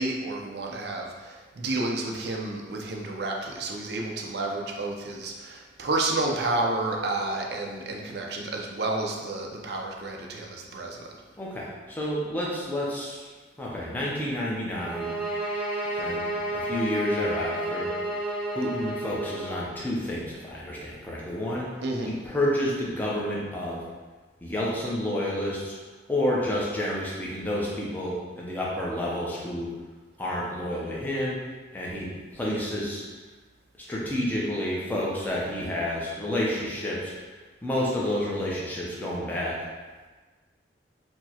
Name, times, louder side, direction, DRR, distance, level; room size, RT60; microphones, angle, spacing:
voice 1, 0.0-11.1 21.8-22.1, right 2 dB, 60° right, 1 dB, 0.4 m, -30 dB
voice 2, 11.4-13.3 13.6-15.5 15.9-17.9 18.5-21.7 22.0-23.8 24.4-25.8 26.1-29.7 30.2-31.4 31.7-33.0 33.8-37.1 37.6-39.6, left 1 dB, 10° left, -5 dB, 0.6 m, -30 dB
sound 1, 14.8-19.7, right 1 dB, 30° left, 1.0 m, -31 dB
4.5 x 2.1 x 2.8 m, 1.3 s
head